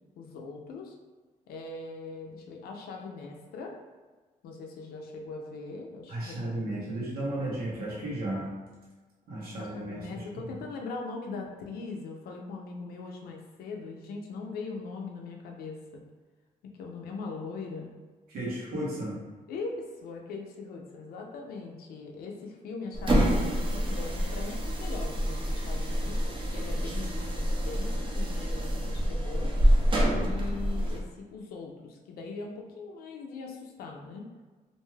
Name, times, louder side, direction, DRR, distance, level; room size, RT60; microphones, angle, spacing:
voice 1, 0.2-1.0 1.5-3.8 4.4-6.9 9.5-16.0 16.6-17.9 19.5-29.5 30.1-34.3, left 4 dB, 85° left, 1 dB, 0.4 m, -41 dB
voice 2, 6.1-8.5 9.3-10.2 18.3-19.2, right 1 dB, 85° right, -7 dB, 1.0 m, -34 dB
sound 1, 22.9-31.0, equal, 35° right, 0.6 m, -27 dB
2.5 x 2.3 x 3.1 m, 1.3 s
cardioid pair, 90°, 15 cm